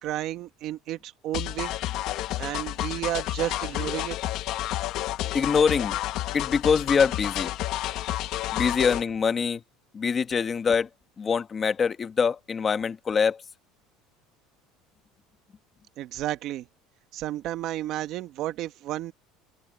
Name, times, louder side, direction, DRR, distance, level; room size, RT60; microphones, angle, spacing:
voice 1, 0.0-1.7 2.4-4.2 16.0-16.7 17.1-19.1, right 14 dB, 45° right, 1.4 m, -32 dB
sound 1, 1.3-9.0, left 15 dB, 50° left, 1.0 m, -30 dB
voice 2, 5.3-6.0 6.3-7.5 8.5-9.6 9.9-10.9 11.2-13.4, left 6 dB, 20° left, 1.4 m, -24 dB
cardioid pair, 155°, 0 cm